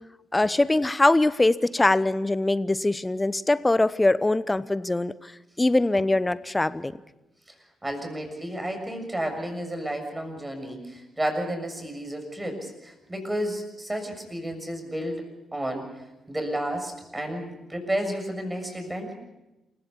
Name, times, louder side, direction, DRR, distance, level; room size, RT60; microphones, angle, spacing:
voice 1, 0.3-5.3 5.6-6.9, left 2 dB, 20° left, 18 dB, 0.9 m, -22 dB
voice 2, 7.8-15.9 16.3-19.1, right 1 dB, 15° right, 4 dB, 6.9 m, -32 dB
27.5 x 16.0 x 7.0 m, 0.97 s
hypercardioid pair, 40°, 0 cm